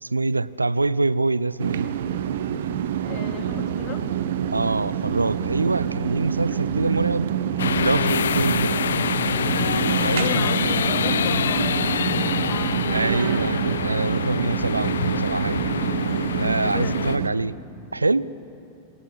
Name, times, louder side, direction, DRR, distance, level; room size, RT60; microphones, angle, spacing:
voice 1, 0.0-1.9 4.5-7.3 7.8-8.7 10.0-10.9 12.9-15.7 16.3-17.6 17.9-18.3, right 3 dB, 80° right, 20 dB, 0.6 m, -25 dB
sound 1, 1.6-17.3, right 9 dB, 60° right, 1.4 m, -26 dB
voice 2, 3.0-4.1 10.1-13.2 16.3-17.0, left 9 dB, 40° left, 5 dB, 2.7 m, -35 dB
sound 2, 7.6-17.2, left 8 dB, 65° left, 0.6 m, -26 dB
27.0 x 26.5 x 8.1 m, 2.6 s
figure-of-eight pair, 90°, 0 cm